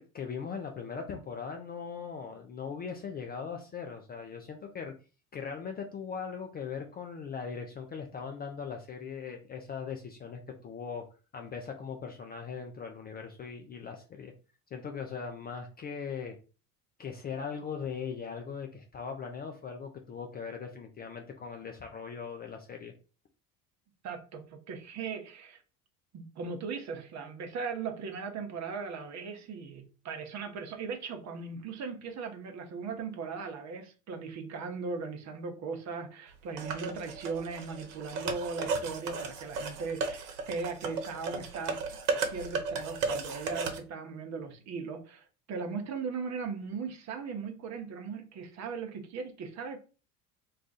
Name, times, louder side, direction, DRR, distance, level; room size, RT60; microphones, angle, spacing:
voice 1, 0.0-4.9 5.3-11.0 11.3-14.3 14.7-16.4 17.0-22.9, left 6 dB, 20° left, 0.4 m, -39 dB
voice 2, 24.0-25.6 26.1-41.8 42.1-49.9, right 5 dB, 35° right, 0.8 m, -38 dB
sound 1, 36.6-43.8, right 4 dB, 70° right, 0.9 m, -35 dB
2.4 x 2.4 x 3.9 m
hypercardioid pair, 70°, 46 cm